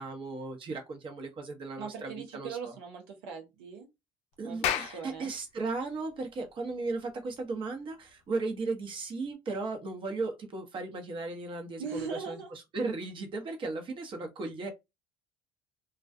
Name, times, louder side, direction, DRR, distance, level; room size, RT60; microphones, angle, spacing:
voice 1, 0.0-2.7 4.4-14.7, right 3 dB, 45° right, 0.9 m, -36 dB
voice 2, 1.8-3.9 4.4-5.3 11.8-12.5, right 6 dB, 85° right, 0.6 m, -40 dB
Clapping, 4.4-9.3, left 10 dB, 65° left, 0.4 m, -37 dB
2.3 x 2.2 x 2.5 m
supercardioid pair, 80°, 12 cm